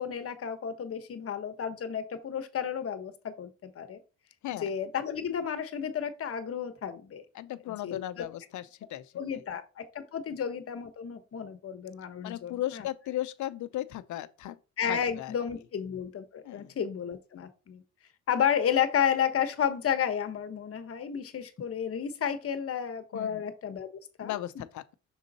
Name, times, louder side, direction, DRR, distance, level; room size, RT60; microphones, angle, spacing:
voice 1, 0.0-4.0 4.6-7.2 7.7-8.0 9.1-12.8 14.8-17.8 18.3-24.3, left 8 dB, 50° left, 1.1 m, -32 dB
voice 2, 7.3-9.5 12.2-14.6 14.8-15.3 16.4-16.7 23.1-23.5 24.2-24.9, left 13 dB, 75° left, 0.7 m, -36 dB
6.4 x 3.8 x 4.1 m
cardioid pair, 90°, 30 cm